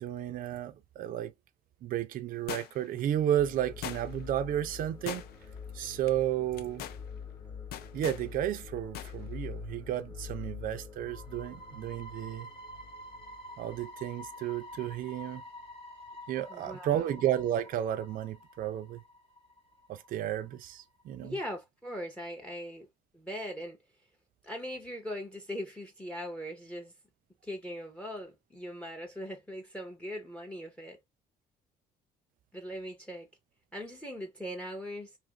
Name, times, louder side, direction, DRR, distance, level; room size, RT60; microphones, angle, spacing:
voice 1, 0.0-1.3 1.8-5.2 5.7-6.8 7.9-12.5 13.6-15.4 16.3-19.0 19.9-21.4, right 11 dB, 55° right, 0.4 m, -32 dB
sound 1, 2.5-3.0 3.8-4.3 5.1-5.6 5.9-6.1 6.5-7.0 7.7-8.3 8.9-9.1 9.5-9.6, left 11 dB, 70° left, 0.4 m, -40 dB
sound 2, 3.4-20.1 20.4-20.5 21.0-21.1, left 4 dB, 30° left, 1.0 m, -46 dB
voice 2, 16.5-17.1 21.2-22.9 23.1-23.8 24.4-26.9 27.4-31.0 32.5-33.3 33.7-35.2, equal, 5° left, 0.6 m, -40 dB
2.7 x 2.5 x 2.7 m
cardioid pair, 110°, 17 cm